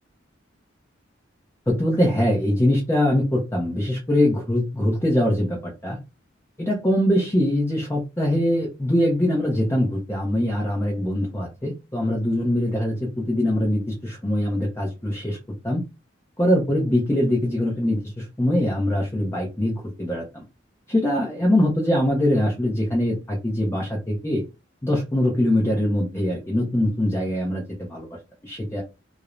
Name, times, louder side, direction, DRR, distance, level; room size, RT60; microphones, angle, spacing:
voice 1, 1.7-6.0 6.6-15.4 15.6-15.8 16.4-20.4 20.9-24.4 24.8-27.6 27.9-28.1 28.4-28.8, left 1 dB, 15° left, -2 dB, 0.5 m, -22 dB
2.4 x 2.0 x 2.9 m, 0.27 s
head